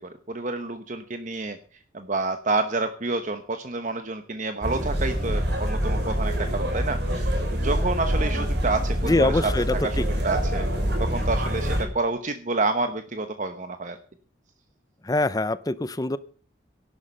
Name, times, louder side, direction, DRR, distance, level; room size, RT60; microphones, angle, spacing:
voice 1, 0.3-1.6 1.9-10.7 11.0-14.0, right 3 dB, 40° right, 8 dB, 1.0 m, -29 dB
sound 1, 4.6-11.8, equal, 65° right, 4.4 m, -25 dB
voice 2, 9.0-10.1 15.1-16.2, left 2 dB, 20° left, 16 dB, 0.6 m, -24 dB
14.0 x 11.5 x 5.7 m, 0.43 s
head